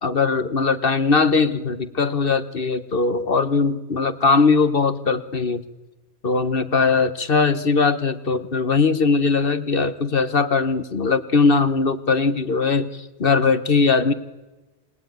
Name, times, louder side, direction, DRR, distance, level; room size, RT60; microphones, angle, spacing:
voice 1, 0.0-5.6 6.2-14.1, left 4 dB, 50° left, 12 dB, 1.4 m, -20 dB
28.5 x 18.5 x 9.4 m, 1.1 s
omnidirectional pair, 1.2 m